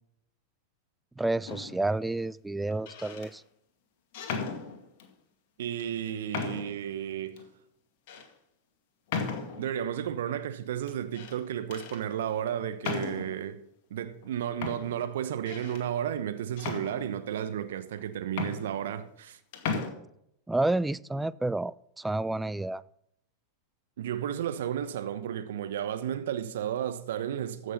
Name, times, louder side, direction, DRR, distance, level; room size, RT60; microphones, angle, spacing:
voice 1, 1.2-3.4 20.5-22.8, right 2 dB, 5° right, 0.4 m, -30 dB
sound 1, 1.5-1.9 2.7-3.3 4.1-5.1 5.8-5.9 6.3-6.9 7.4-7.5 8.1-8.3 9.1-9.8 10.9-11.4 11.7-12.0 12.8-13.4 14.2-14.3 14.6-15.9 16.6-17.4 18.0-18.1 18.3-19.3 19.5-19.9, left 5 dB, 55° left, 2.1 m, -36 dB
voice 2, 5.6-7.4 9.6-13.6 13.9-19.4 24.0-27.7, right 10 dB, 65° right, 1.0 m, -33 dB
14.5 x 6.5 x 5.6 m
figure-of-eight pair, 95°, 0 cm